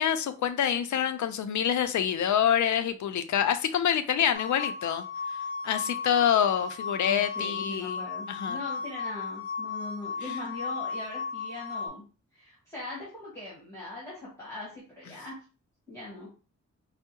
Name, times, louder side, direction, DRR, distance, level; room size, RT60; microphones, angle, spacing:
voice 1, 0.0-5.1 5.6-8.6, left 9 dB, 80° left, 0.5 m, -26 dB
sound 1, 4.3-11.9, left 5 dB, 10° right, 1.4 m, -35 dB
voice 2, 6.9-12.0 12.3-15.4 15.9-16.3, left 2 dB, 10° left, 1.3 m, -41 dB
4.4 x 2.0 x 2.8 m
wide cardioid pair, 170°, 29 cm